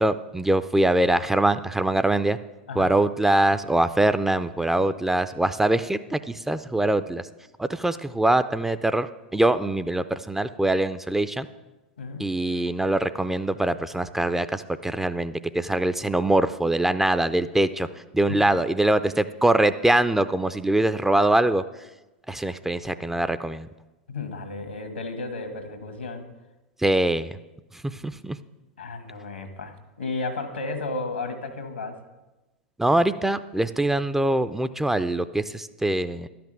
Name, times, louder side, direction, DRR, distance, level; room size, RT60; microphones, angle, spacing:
voice 1, 0.0-2.4 2.8-7.2 7.6-11.5 12.2-17.9 18.1-21.6 22.3-23.7 26.8-27.3 27.9-28.4 32.8-36.3, right 1 dB, 5° right, 12 dB, 0.4 m, -23 dB
voice 2, 12.0-12.3 18.3-18.5 22.5-22.6 22.9-23.2 24.1-26.2 28.8-32.0, left 3 dB, 80° left, 8 dB, 1.5 m, -33 dB
12.0 x 5.9 x 7.6 m, 1.1 s
figure-of-eight pair, 90°, 6 cm